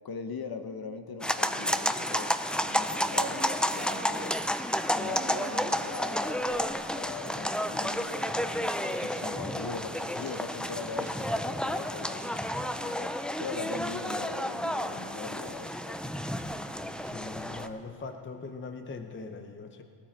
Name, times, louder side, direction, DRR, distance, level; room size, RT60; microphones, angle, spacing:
voice 1, 0.0-2.3 2.6-4.3 4.9-6.5 6.9-16.0, left 5 dB, 45° left, 8 dB, 1.0 m, -41 dB
sound 1, 1.2-17.7, equal, ahead, 0.4 m, -31 dB
Sound Walk - Rocks, 3.1-17.9, right 4 dB, 30° right, 1.2 m, -50 dB
voice 2, 17.1-19.8, left 4 dB, 25° left, 6 dB, 0.8 m, -41 dB
19.5 x 13.0 x 4.5 m, 2.6 s
cardioid pair, 120°, 50 cm